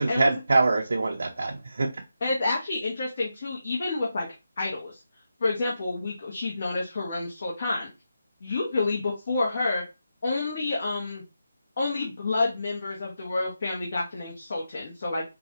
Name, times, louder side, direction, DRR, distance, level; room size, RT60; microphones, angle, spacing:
voice 1, 0.0-2.0, right 3 dB, 70° right, 0.5 m, -24 dB
voice 2, 2.2-4.3 4.6-5.0 5.4-7.9 8.4-9.8 10.2-11.2 11.8-15.2, left 3 dB, 50° left, 1.0 m, -29 dB
3.9 x 2.3 x 2.9 m
figure-of-eight pair, 160°, 0 cm